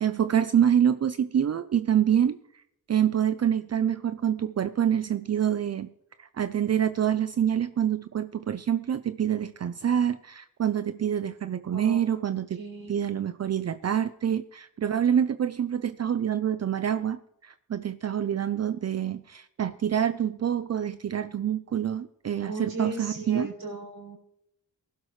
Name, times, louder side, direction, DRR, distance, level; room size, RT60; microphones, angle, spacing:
voice 1, 0.0-2.6 2.9-5.9 6.2-12.6 12.9-23.5, right 9 dB, 45° right, 12 dB, 0.5 m, -26 dB
voice 2, 12.5-13.1 22.5-24.2, right 3 dB, 85° right, -1 dB, 7.0 m, -36 dB
19.0 x 12.0 x 3.2 m, 0.77 s
cardioid pair, 85°, 35 cm